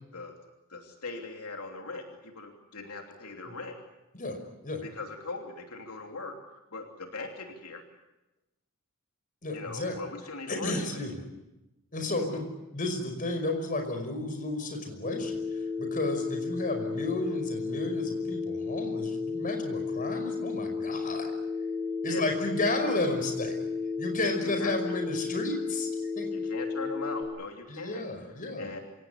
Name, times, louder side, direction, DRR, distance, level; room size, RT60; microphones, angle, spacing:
voice 1, 0.7-3.8 4.8-6.3 6.7-7.8 9.5-10.7 12.3-12.4 22.0-22.2 24.4-25.0 26.3-28.0 28.6-28.8, left 3 dB, 80° left, 3 dB, 3.1 m, -40 dB
voice 2, 9.4-10.0 10.5-11.2 11.9-12.5 12.7-21.3 22.0-23.7 24.0-26.5 27.7-28.7, left 2 dB, 40° left, 4 dB, 5.3 m, -33 dB
Telephone, 15.0-27.2, left 4 dB, 20° right, 5.4 m, -33 dB
27.0 x 17.5 x 9.9 m, 0.99 s
head